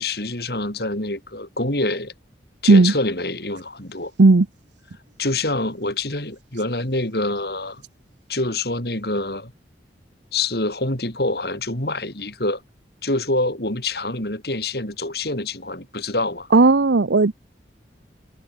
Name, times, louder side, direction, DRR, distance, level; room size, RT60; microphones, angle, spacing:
voice 1, 0.0-2.1 2.6-4.1 5.2-7.8 8.3-9.5 10.3-12.6 13.0-16.5, left 2 dB, 60° left, 4.8 m, -26 dB
voice 2, 16.5-17.4, right 3 dB, 85° right, 0.7 m, -14 dB
head